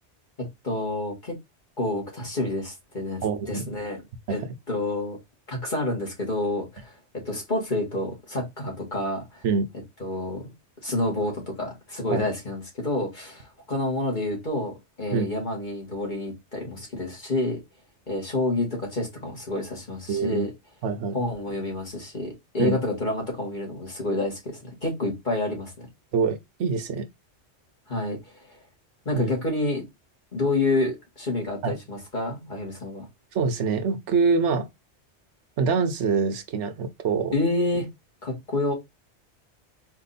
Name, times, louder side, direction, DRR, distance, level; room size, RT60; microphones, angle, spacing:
voice 1, 0.4-1.4 1.8-4.0 4.3-4.4 4.7-5.2 5.5-6.9 7.3-9.5 10.0-10.5 10.8-17.6 18.1-20.5 21.1-25.9 27.9-28.5 29.1-29.8 30.3-33.1 37.3-37.9 38.2-38.7, left 2 dB, 45° left, 2.1 m, -28 dB
voice 2, 3.2-3.7 4.3-4.4 9.4-9.7 12.1-12.3 15.1-15.3 20.1-20.5 20.8-21.2 22.6-22.8 26.1-27.1 29.1-29.3 31.6-31.7 33.3-34.7 35.6-37.3, right 5 dB, 85° right, 1.1 m, -25 dB
4.3 x 2.8 x 4.1 m
omnidirectional pair, 1.2 m